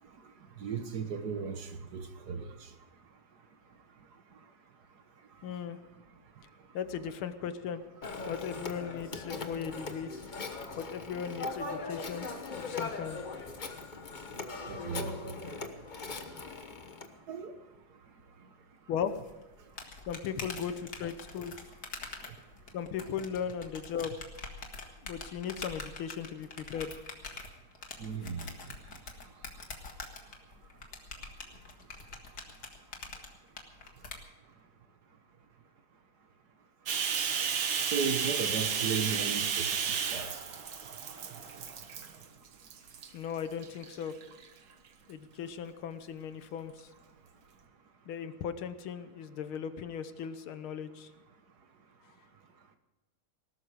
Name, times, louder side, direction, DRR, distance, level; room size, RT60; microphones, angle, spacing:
voice 1, 0.6-2.5 14.7-15.2 17.3-17.5 28.0-28.5 37.2-37.3 37.9-39.8 40.1-40.3, right 6 dB, 55° right, 8 dB, 1.6 m, -35 dB
voice 2, 5.4-5.8 6.7-7.8 8.3-10.1 10.8-13.2 18.9-19.2 20.1-21.6 22.7-24.2 25.0-26.9 43.1-44.2 45.1-46.9 48.1-51.1, left 7 dB, 80° left, 11 dB, 1.8 m, -37 dB
Telephone, 8.0-17.1, left 3 dB, 30° left, 0.9 m, -40 dB
sound 1, 19.2-34.2, left 4 dB, 50° left, 2.4 m, -45 dB
Bathtub (filling or washing), 36.9-42.2 42.7-43.1 43.6-44.4, right 7 dB, 70° right, 2.1 m, -32 dB
19.5 x 12.5 x 5.0 m, 1.1 s
omnidirectional pair, 2.3 m